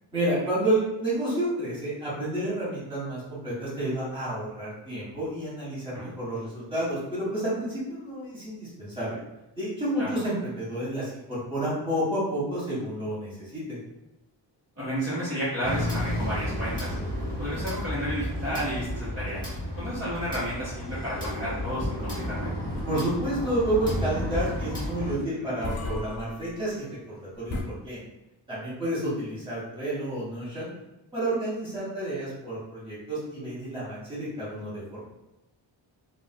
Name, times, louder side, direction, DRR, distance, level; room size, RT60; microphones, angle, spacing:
voice 1, 0.1-9.2 9.5-13.8 22.9-28.0 28.5-30.7 31.1-35.0, right 1 dB, 10° right, -9 dB, 1.4 m, -30 dB
voice 2, 14.8-17.0 17.4-19.5 19.7-22.5 25.6-25.7, equal, 35° right, -10 dB, 1.2 m, -32 dB
sound 1, 15.6-25.1, left 1 dB, 10° left, 1.1 m, -32 dB
sound 2, 22.7-27.6, left 3 dB, 60° left, 0.7 m, -41 dB
3.8 x 2.4 x 2.2 m, 0.94 s
wide cardioid pair, 170°, 45 cm